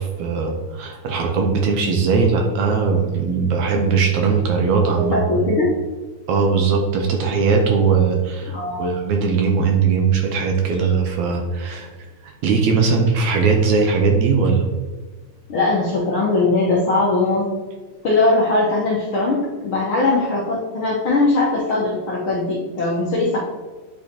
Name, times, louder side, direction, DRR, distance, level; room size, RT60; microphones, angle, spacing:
voice 1, 0.0-5.7 6.3-11.9 12.2-14.7, right 5 dB, 70° right, 2 dB, 2.0 m, -19 dB
voice 2, 4.9-5.7 8.5-8.9 15.5-17.5 18.0-23.4, left 2 dB, 65° left, -5 dB, 1.3 m, -20 dB
8.9 x 4.8 x 2.8 m, 1.3 s
omnidirectional pair, 3.8 m